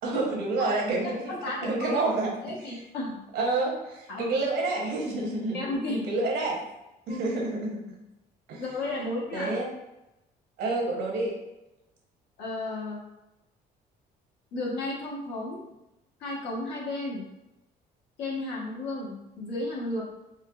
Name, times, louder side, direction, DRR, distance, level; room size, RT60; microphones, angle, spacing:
voice 1, 0.0-1.3 1.6-2.4 3.3-5.6 5.9-6.6 7.1-7.8 8.5-8.6 9.3-9.7 10.6-11.4, right 2 dB, 75° right, -1 dB, 1.0 m, -28 dB
voice 2, 1.3-1.9 2.4-3.2 4.1-4.3 5.5-6.0 7.1-7.3 8.6-9.5 12.4-13.0 14.5-15.6 16.2-17.2 18.2-20.0, left 2 dB, 85° left, -5 dB, 1.2 m, -33 dB
4.3 x 2.1 x 2.4 m, 0.93 s
cardioid pair, 110°, 17 cm